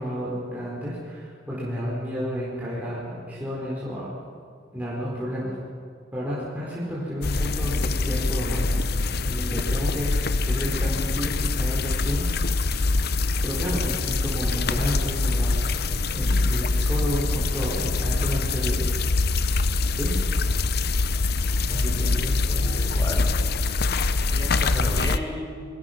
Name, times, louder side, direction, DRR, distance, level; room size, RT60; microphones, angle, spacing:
voice 1, 0.0-4.1 4.7-5.6 6.1-8.7 9.2-10.1 10.4-12.9 13.4-15.8 16.1-18.8 19.9-20.2 21.7-22.1, equal, 10° right, -8 dB, 4.3 m, -31 dB
sound 1, 7.2-25.2, left 3 dB, 60° left, 0.8 m, -24 dB
voice 2, 21.7-23.3 24.3-25.7, equal, 25° left, 3 dB, 3.9 m, -34 dB
29.0 x 22.0 x 5.9 m, 2.2 s
head